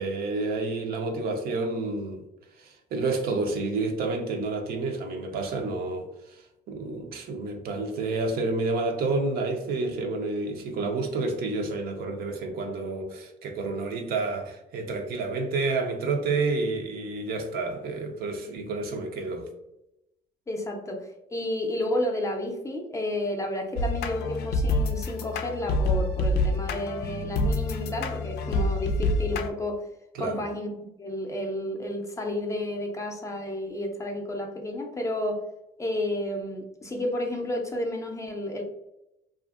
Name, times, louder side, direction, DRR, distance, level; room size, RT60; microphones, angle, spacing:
voice 1, 0.0-2.2 2.6-19.5 30.1-30.4, right 3 dB, 65° right, 0.5 m, -29 dB
voice 2, 20.5-29.8 30.2-35.4 35.8-38.6, left 1 dB, 20° left, 0.5 m, -31 dB
sound 1, 23.8-29.5, left 2 dB, 75° left, 0.4 m, -27 dB
2.5 x 2.4 x 2.4 m
cardioid pair, 110°, 17 cm